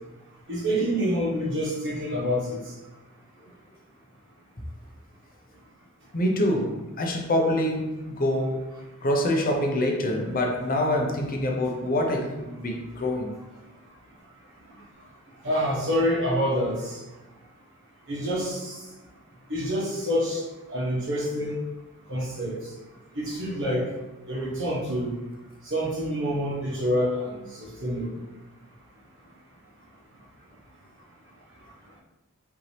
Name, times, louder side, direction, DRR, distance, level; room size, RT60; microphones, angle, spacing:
voice 1, 0.5-2.6 15.4-17.0 18.1-18.8 19.5-20.4 20.7-21.6 22.1-22.6 23.2-23.9 24.3-25.2 25.7-28.1, equal, 60° right, -3 dB, 1.1 m, -27 dB
voice 2, 6.1-8.7 9.0-13.3, left 1 dB, 40° left, 1 dB, 0.7 m, -25 dB
5.3 x 2.9 x 3.2 m, 1.1 s
head